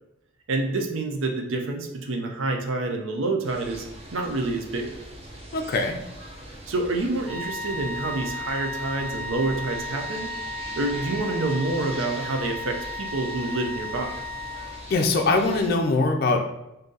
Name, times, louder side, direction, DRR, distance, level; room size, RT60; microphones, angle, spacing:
voice 1, 0.5-3.9 4.1-4.9 6.7-10.3 10.8-14.1, right 2 dB, 75° right, 3 dB, 0.5 m, -27 dB
sound 1, 3.4-15.7, right 1 dB, 30° right, 0.7 m, -42 dB
voice 2, 5.5-6.0 14.9-16.5, left 3 dB, 50° left, 3 dB, 0.4 m, -22 dB
sound 2, 7.3-15.1, left 2 dB, 5° right, 1.1 m, -35 dB
3.8 x 2.7 x 3.8 m, 0.89 s
head